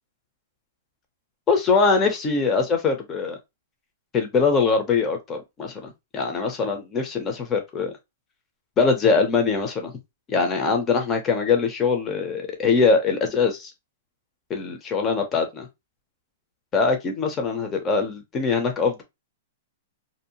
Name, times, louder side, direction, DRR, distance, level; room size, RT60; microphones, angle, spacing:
voice 1, 1.5-3.4 4.1-7.9 8.8-9.9 10.3-13.7 14.5-15.7 16.7-19.0, left 4 dB, 20° left, 0.7 m, -22 dB
2.6 x 2.0 x 2.8 m
hypercardioid pair, 155°, 0 cm